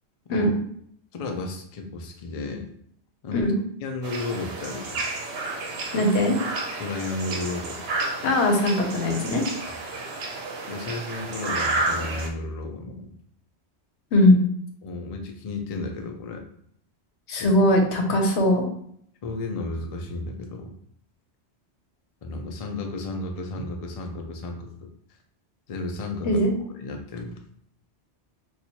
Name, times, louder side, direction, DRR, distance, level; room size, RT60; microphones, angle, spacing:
voice 1, 1.1-2.7 3.2-3.4 3.8-5.0 6.8-7.8 9.7-9.8 10.7-13.1 14.8-16.4 17.4-17.5 19.2-20.7 22.2-24.7 25.7-26.5 26.8-27.4, left 3 dB, 50° left, 3 dB, 0.4 m, -33 dB
sound 1, 4.0-12.3, right 3 dB, 70° right, 0.8 m, -31 dB
voice 2, 5.9-6.4 8.2-9.4 14.1-14.4 17.3-18.6 26.2-26.5, left 1 dB, 75° left, 3 dB, 1.0 m, -20 dB
4.3 x 2.4 x 2.7 m, 0.67 s
omnidirectional pair, 1.2 m